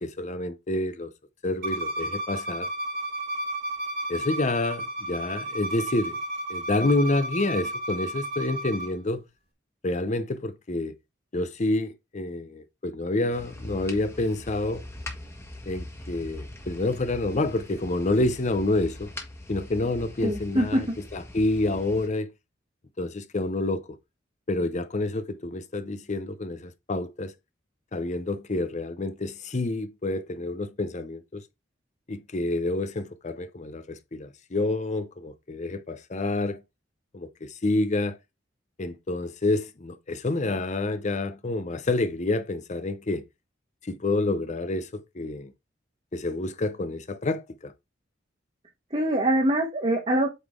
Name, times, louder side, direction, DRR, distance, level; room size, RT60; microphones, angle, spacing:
voice 1, 0.0-1.1 1.4-2.7 4.1-6.2 6.5-9.2 9.8-10.9 11.3-14.8 15.7-19.1 19.5-20.9 21.1-22.3 23.0-23.8 24.5-27.3 27.9-31.4 32.1-36.6 37.1-38.2 38.8-43.2 43.8-45.5 46.1-47.7, left 2 dB, 40° left, 0.6 m, -28 dB
Bowed string instrument, 1.6-8.9, right 1 dB, 55° right, 1.5 m, -33 dB
sound 1, 13.3-22.1, left 1 dB, 15° left, 1.4 m, -41 dB
voice 2, 20.2-21.0 48.9-50.3, right 1 dB, 35° right, 1.3 m, -24 dB
8.3 x 3.9 x 3.6 m
head